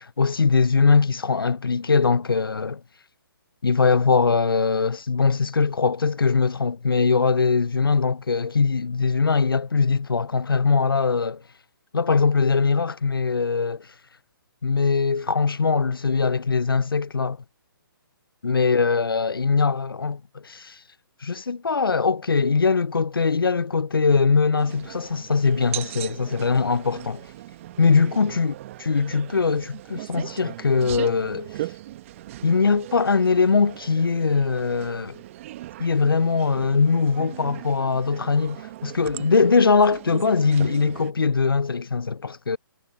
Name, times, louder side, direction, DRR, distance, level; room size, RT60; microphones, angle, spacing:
voice 1, 0.0-2.8 3.6-11.4 11.9-13.9 14.6-17.4 18.4-20.8 21.2-27.2 27.8-28.5 28.8-31.5 32.4-35.2 35.8-42.6, left 4 dB, 80° left, 0.7 m, -21 dB
sound 1, 24.6-41.1, right 15 dB, 35° right, 1.3 m, -38 dB
figure-of-eight pair, 135°, 12 cm